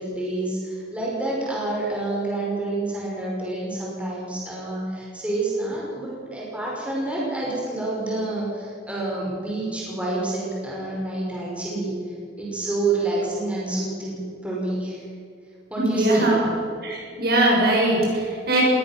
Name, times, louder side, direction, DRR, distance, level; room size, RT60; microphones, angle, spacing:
voice 1, 0.0-15.0 15.7-16.3, right 2 dB, 5° right, -5 dB, 5.6 m, -28 dB
voice 2, 15.8-16.5 16.8-18.6, right 1 dB, 55° right, -2 dB, 6.8 m, -21 dB
20.0 x 17.0 x 7.5 m, 2.3 s
head